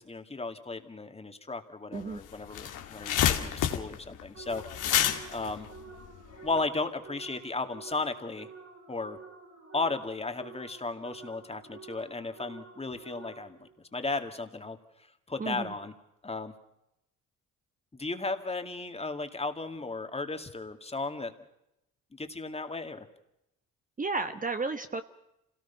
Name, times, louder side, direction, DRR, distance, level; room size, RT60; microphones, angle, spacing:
voice 1, 0.0-4.6 5.3-5.7 6.4-8.5 8.9-9.2 9.7-14.8 15.3-15.9 16.2-16.5 17.9-21.3 22.1-23.1, left 3 dB, 20° left, 7 dB, 2.3 m, -35 dB
sound 1, 2.0-2.1 2.3-6.6, left 10 dB, 85° left, 2.3 m, -29 dB
sound 2, 4.3-13.7, right 4 dB, 60° right, 6.3 m, -50 dB
voice 2, 15.4-15.7 24.0-25.0, right 3 dB, 25° right, 8 dB, 1.2 m, -32 dB
27.5 x 18.0 x 5.8 m, 0.84 s
cardioid pair, 90°, 30 cm